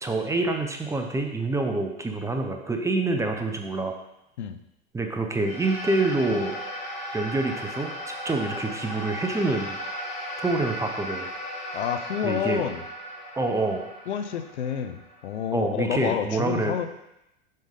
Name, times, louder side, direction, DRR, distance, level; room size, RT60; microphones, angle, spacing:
voice 1, 0.0-3.9 4.9-6.5 7.1-9.8 10.4-11.3 12.2-12.7 13.4-13.8 15.5-16.7, right 2 dB, 10° right, 3 dB, 0.7 m, -26 dB
sound 1, 5.4-15.9, equal, 20° left, 1.5 m, -36 dB
voice 2, 11.7-12.8 14.1-16.9, left 9 dB, 85° left, 9 dB, 0.6 m, -29 dB
5.3 x 5.3 x 3.7 m, 0.86 s
hypercardioid pair, 105°, 33 cm